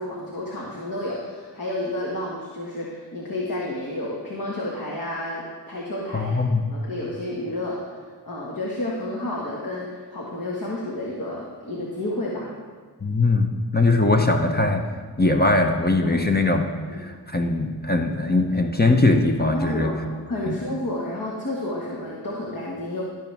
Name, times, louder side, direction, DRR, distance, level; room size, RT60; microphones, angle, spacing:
voice 1, 0.0-6.3 6.7-8.0 8.3-12.5 16.1-16.3 16.9-17.0 19.5-23.0, left 1 dB, 50° left, -4 dB, 1.8 m, -30 dB
voice 2, 6.1-6.6 13.0-14.8 15.2-16.7 16.9-19.9 20.5-20.6, left 2 dB, 20° left, 3 dB, 1.0 m, -21 dB
13.5 x 6.1 x 3.5 m, 1.5 s
cardioid pair, 40°, 44 cm